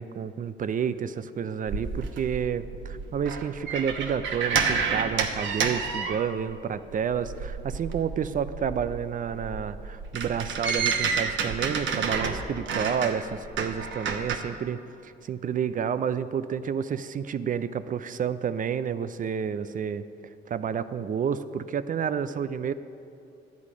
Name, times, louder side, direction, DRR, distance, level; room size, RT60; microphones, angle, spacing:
voice 1, 0.0-20.0 20.5-22.7, right 7 dB, 45° right, 13 dB, 0.5 m, -30 dB
sound 1, 1.7-6.6 6.9-14.4, right 5 dB, 70° right, 1.0 m, -30 dB
11.0 x 8.4 x 5.0 m, 2.7 s
cardioid pair, 90°, 20 cm